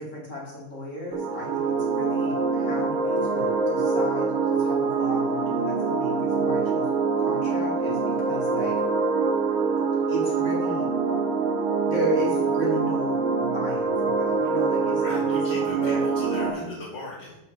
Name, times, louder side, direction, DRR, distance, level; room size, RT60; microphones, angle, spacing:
voice 1, 0.0-6.9 7.2-8.8 10.1-10.8 11.9-16.0, equal, 35° left, -4 dB, 2.5 m, -34 dB
sound 1, 1.1-16.5, right 4 dB, 80° right, 1.8 m, -25 dB
voice 2, 15.0-17.4, left 2 dB, 60° left, -6 dB, 2.2 m, -37 dB
6.1 x 5.5 x 6.3 m, 0.94 s
omnidirectional pair, 2.3 m